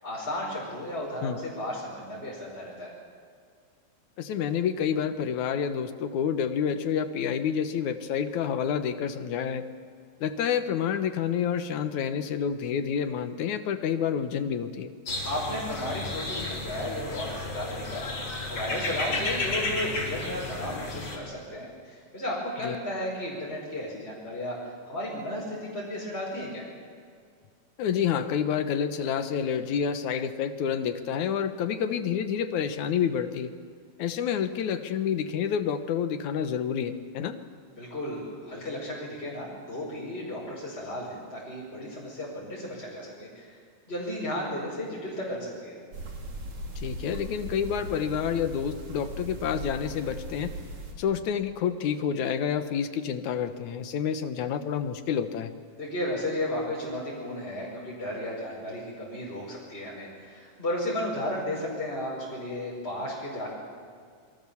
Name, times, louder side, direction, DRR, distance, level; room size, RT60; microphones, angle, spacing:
voice 1, 0.0-2.9 15.2-26.6 37.8-43.6 43.9-45.8 55.7-63.6, left 1 dB, 20° left, -5 dB, 5.8 m, -34 dB
voice 2, 4.2-9.6 10.2-14.9 22.6-22.8 27.8-33.5 34.0-37.4 46.8-50.5 51.0-55.5, left 8 dB, 75° left, 9 dB, 2.6 m, -28 dB
sound 1, 15.1-21.2, left 2 dB, 45° left, 5.1 m, -33 dB
sound 2, 45.9-50.9, right 1 dB, 70° right, 4.4 m, -39 dB
28.0 x 23.0 x 7.2 m, 2.1 s
omnidirectional pair, 3.4 m